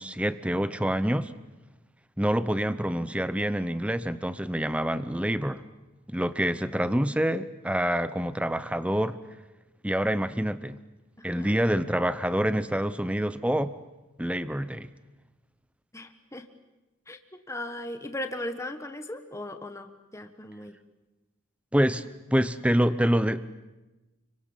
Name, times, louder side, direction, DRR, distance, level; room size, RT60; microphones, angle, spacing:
voice 1, 0.0-1.3 2.2-5.6 6.1-9.2 9.8-10.8 11.2-13.7 14.2-14.9 21.7-22.0 22.3-23.4, equal, 5° right, 13 dB, 0.8 m, -26 dB
voice 2, 6.7-7.1 11.2-11.6 15.9-16.5 17.1-20.8, left 1 dB, 15° left, 7 dB, 1.5 m, -38 dB
30.0 x 23.5 x 7.3 m, 1.1 s
head